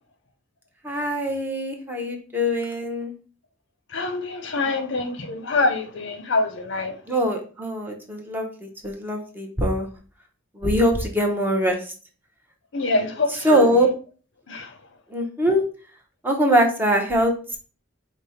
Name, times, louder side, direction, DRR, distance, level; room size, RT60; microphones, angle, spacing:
voice 1, 0.8-3.1 7.1-9.9 10.6-11.8 13.4-13.9 15.1-15.6 16.2-17.6, equal, 10° right, 0.7 m, -22 dB
voice 2, 3.9-7.0 12.7-13.8 14.5-14.7, left 3 dB, 65° left, 0.6 m, -25 dB
5.0 x 2.1 x 4.1 m
head